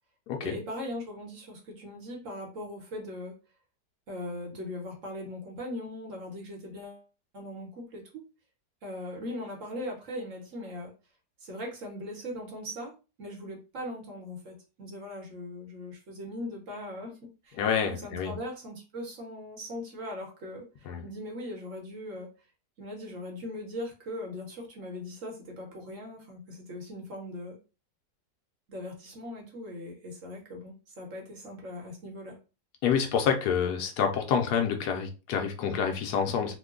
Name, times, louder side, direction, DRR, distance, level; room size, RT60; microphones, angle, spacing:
voice 1, 0.4-3.3 4.1-7.0 7.3-8.2 8.8-10.9 11.4-17.6 17.9-22.3 22.8-27.6 28.7-32.4, left 1 dB, 55° right, 0 dB, 1.2 m, -40 dB
voice 2, 17.6-18.4 20.9-21.0 32.8-36.6, left 7 dB, 75° left, 4 dB, 1.1 m, -27 dB
3.0 x 2.1 x 3.6 m, 0.32 s
omnidirectional pair, 1.8 m